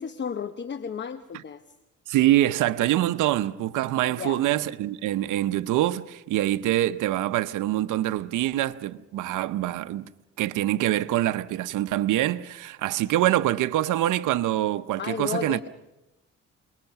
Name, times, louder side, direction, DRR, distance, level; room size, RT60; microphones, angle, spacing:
voice 1, 0.0-1.6 4.1-4.4 15.0-15.7, left 7 dB, 40° left, 0.9 m, -33 dB
voice 2, 2.1-10.0 10.4-15.7, right 14 dB, 85° right, 0.8 m, -25 dB
28.0 x 21.0 x 5.8 m
cardioid pair, 90°, 30 cm